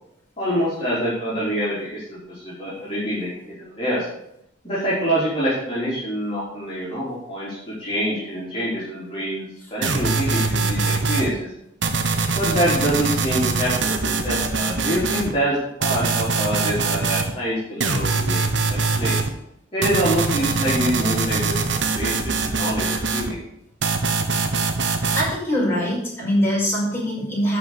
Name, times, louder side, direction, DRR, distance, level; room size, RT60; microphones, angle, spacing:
voice 1, 0.4-4.1 4.6-11.5 12.3-18.4 18.7-19.2 19.7-23.4, equal, 30° left, -9 dB, 3.6 m, -26 dB
sound 1, 9.8-11.3 11.8-15.3 15.8-17.3 17.8-19.3 19.8-23.3 23.8-25.3, right 4 dB, 70° right, 1.2 m, -23 dB
voice 2, 24.9-27.6, equal, 10° left, -6 dB, 5.0 m, -23 dB
11.0 x 5.0 x 8.0 m, 0.76 s
head